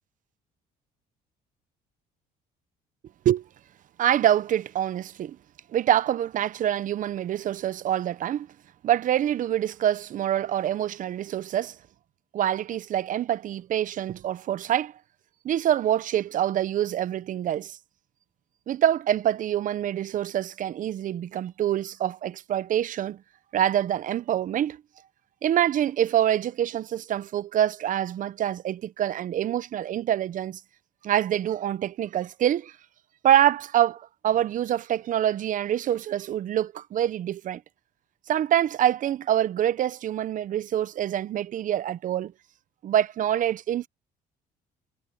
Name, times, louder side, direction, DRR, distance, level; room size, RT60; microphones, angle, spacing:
voice 1, 4.0-5.4 5.7-8.5 8.8-11.8 12.3-14.9 15.4-17.8 18.7-23.2 23.5-24.8 25.4-30.6 31.0-32.8 33.2-37.6 38.3-42.3 42.8-43.9, right 11 dB, 50° right, 0.7 m, -25 dB
cardioid pair, 110°, 17 cm